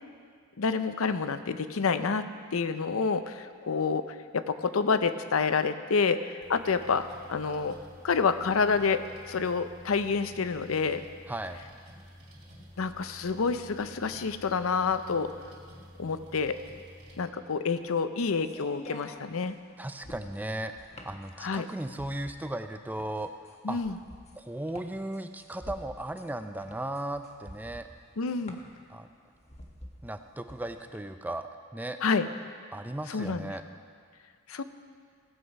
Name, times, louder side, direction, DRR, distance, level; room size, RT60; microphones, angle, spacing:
voice 1, 0.6-7.8 8.0-11.0 12.8-15.3 16.0-16.6 17.2-19.5 21.4-21.7 23.6-24.0 28.2-28.6 32.0-32.3 33.1-33.5 34.5-34.6, left 5 dB, 85° left, 11 dB, 0.6 m, -28 dB
sound 1, 6.4-17.2, equal, 35° right, 2.7 m, -51 dB
voice 2, 11.3-11.6 19.8-23.3 23.7-23.8 24.4-27.9 28.9-29.1 30.0-32.0 32.7-33.6, right 1 dB, 10° right, 8 dB, 0.5 m, -36 dB
sound 2, 17.1-31.0, left 1 dB, 35° left, 1.1 m, -49 dB
16.0 x 8.0 x 5.3 m, 2.1 s
head